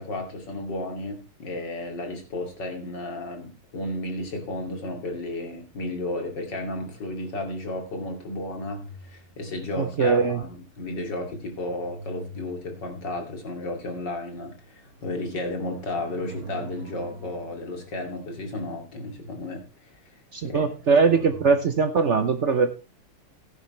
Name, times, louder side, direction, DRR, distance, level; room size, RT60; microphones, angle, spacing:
voice 1, 0.0-20.0 20.4-20.7, left 2 dB, 55° left, 3 dB, 3.2 m, -33 dB
sound 1, 8.0-9.6 11.0-13.3 14.0-19.1 20.3-22.1, right 2 dB, 40° right, 1.5 m, -44 dB
voice 2, 9.8-10.4 20.3-22.7, right 5 dB, 60° right, 9 dB, 0.7 m, -21 dB
14.0 x 10.5 x 3.2 m, 0.29 s
omnidirectional pair, 2.3 m